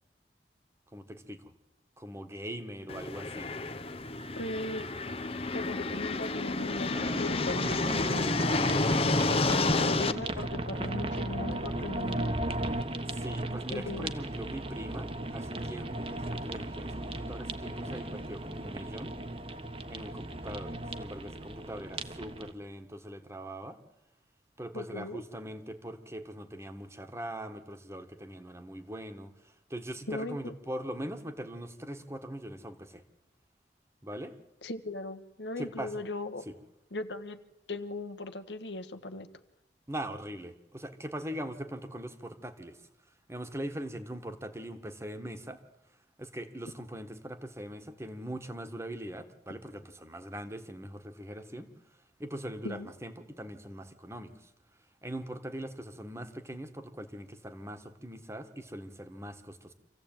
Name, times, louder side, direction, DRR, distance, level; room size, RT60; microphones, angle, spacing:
voice 1, 0.9-1.5 2.0-3.5 13.1-19.2 19.9-23.8 24.6-33.0 34.0-34.4 35.6-35.9 36.4-36.5 39.9-42.8 43.3-45.6 46.2-51.7 52.2-54.5 55.0-59.7, right 1 dB, 15° right, 8 dB, 1.6 m, -41 dB
sound 1, 2.9-10.1, left 2 dB, 35° left, 0.9 m, -30 dB
voice 2, 4.4-4.9 5.5-7.9 8.1-8.3 8.9-12.3 13.7-14.1 24.7-25.2 30.1-30.5 34.6-36.4 36.9-37.4 37.7-39.3 52.6-52.9, left 2 dB, 90° left, 9 dB, 1.5 m, -38 dB
sound 2, 6.9-22.5, right 1 dB, 30° right, 1.3 m, -36 dB
26.0 x 15.5 x 9.1 m, 0.95 s
head